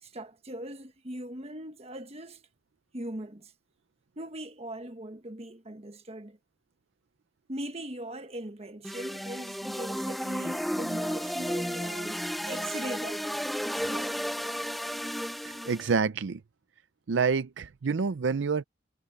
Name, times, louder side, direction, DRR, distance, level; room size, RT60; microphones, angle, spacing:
voice 1, 0.0-2.5 2.9-3.5 4.2-6.4 7.5-14.1, right 1 dB, 35° right, 1.4 m, -40 dB
sound 1, 8.8-16.0, equal, ahead, 0.4 m, -33 dB
voice 2, 15.4-16.4 17.1-18.6, right 5 dB, 65° right, 0.5 m, -28 dB
head